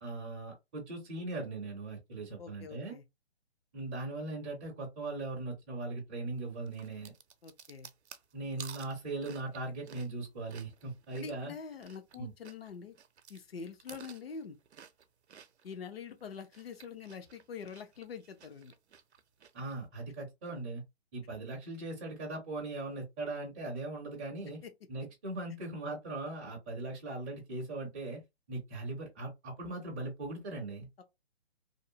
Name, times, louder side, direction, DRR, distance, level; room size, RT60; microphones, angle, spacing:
voice 1, 0.0-3.0 3.7-7.1 8.3-11.5 12.2-12.3 19.5-20.8 21.1-24.6 24.9-28.2 28.5-30.9, right 2 dB, 10° right, 0.4 m, -39 dB
voice 2, 2.4-3.0 7.4-7.9 11.2-13.0 13.3-14.6 15.6-18.7 24.6-24.7 31.0-31.1, left 6 dB, 65° left, 0.7 m, -45 dB
sound 1, 6.7-12.2 12.4-15.8 16.2-19.7, right 7 dB, 85° right, 0.5 m, -53 dB
2.6 x 2.0 x 2.6 m
hypercardioid pair, 140°, 33 cm